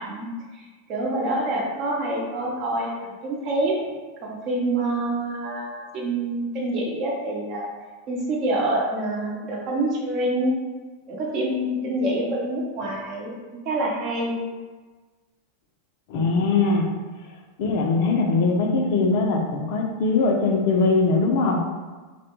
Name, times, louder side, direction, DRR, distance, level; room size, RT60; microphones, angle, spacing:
voice 1, 0.0-3.8 4.2-7.7 8.1-10.5 11.1-13.4 13.6-14.4, right 1 dB, 45° right, -3 dB, 0.7 m, -26 dB
voice 2, 16.1-16.9 17.6-21.6, left 3 dB, 60° left, 1 dB, 0.4 m, -21 dB
2.2 x 2.1 x 3.0 m, 1.3 s
hypercardioid pair, 95°, 0 cm